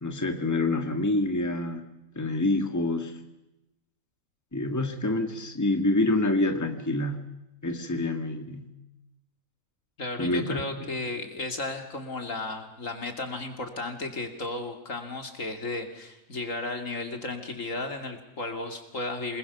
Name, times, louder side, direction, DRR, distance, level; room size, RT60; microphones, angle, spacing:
voice 1, 0.0-1.8 2.2-3.1 4.5-7.3 7.6-8.7 10.2-10.9, left 2 dB, 15° left, 6 dB, 1.8 m, -27 dB
voice 2, 10.0-19.4, left 2 dB, 70° left, 5 dB, 3.0 m, -34 dB
28.0 x 20.5 x 7.0 m, 0.93 s
omnidirectional pair, 1.4 m